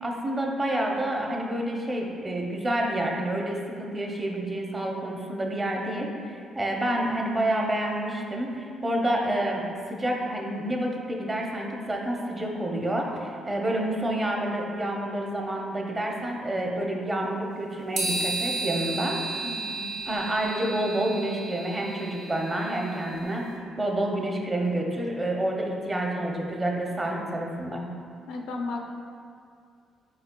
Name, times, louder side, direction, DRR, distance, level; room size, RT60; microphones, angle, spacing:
voice 1, 0.0-19.4 20.1-23.5 23.8-27.9, right 1 dB, 25° right, 0 dB, 0.6 m, -28 dB
sound 1, 18.0-23.3, right 2 dB, 80° right, 0.7 m, -33 dB
voice 2, 19.4-19.9 28.3-28.8, left 3 dB, 90° left, 1 dB, 0.5 m, -34 dB
5.5 x 4.1 x 2.2 m, 2.3 s
cardioid pair, 90°, 0 cm